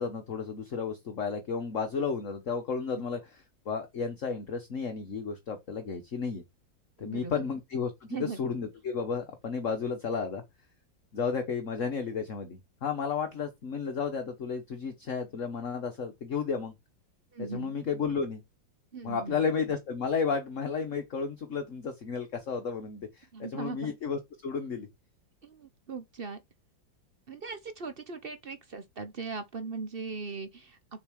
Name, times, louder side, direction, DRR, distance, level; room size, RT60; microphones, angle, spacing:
voice 1, 0.0-6.4 7.0-10.4 11.1-16.7 17.4-18.4 19.0-24.9, left 5 dB, 45° left, 1.4 m, -33 dB
voice 2, 7.0-7.4 8.1-8.4 17.3-17.8 18.9-19.4 23.3-23.9 25.4-26.4 27.3-30.8, right 4 dB, 45° right, 0.7 m, -39 dB
6.9 x 4.7 x 6.3 m
omnidirectional pair, 2.1 m